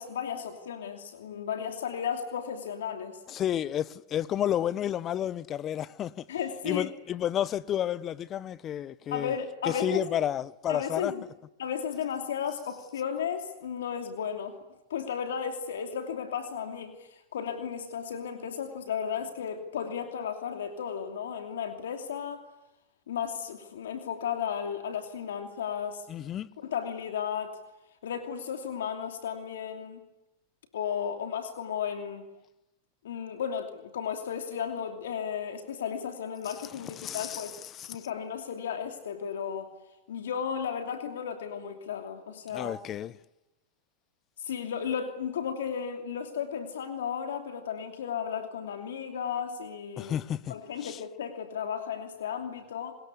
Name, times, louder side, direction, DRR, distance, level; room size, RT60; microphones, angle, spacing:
voice 1, 0.0-3.2 6.3-6.9 9.1-10.0 10.7-11.2 11.6-14.6 14.9-22.4 23.1-26.0 26.6-27.6 28.0-30.0 30.7-32.3 33.0-37.5 37.9-39.7 40.1-42.8 44.4-50.1 50.5-52.9, left 7 dB, 75° left, 2.9 m, -34 dB
voice 2, 3.3-6.2 6.6-9.3 9.6-11.1 26.1-26.5 36.9-38.1 42.5-43.1 50.0-50.5 50.8-51.0, left 10 dB, 35° left, 1.0 m, -31 dB
25.0 x 21.0 x 9.7 m
hypercardioid pair, 105°, 0 cm